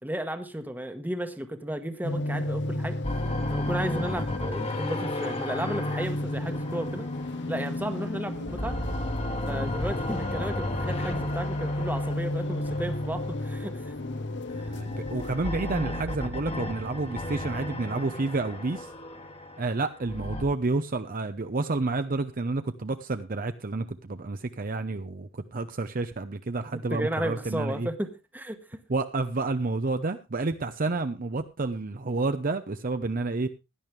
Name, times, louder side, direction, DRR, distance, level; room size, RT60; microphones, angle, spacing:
voice 1, 0.0-3.0 3.5-7.1 7.5-8.8 9.5-13.9 26.9-28.8, right 1 dB, 10° right, 1.2 m, -33 dB
sound 1, 2.0-15.4, left 1 dB, 60° left, 1.0 m, -33 dB
sound 2, 3.0-8.0 8.3-13.7 14.4-20.4, left 1 dB, 30° left, 1.5 m, -34 dB
voice 2, 14.7-18.9 19.6-27.9 28.9-33.5, right 3 dB, 45° right, 0.7 m, -30 dB
16.5 x 10.5 x 3.3 m
head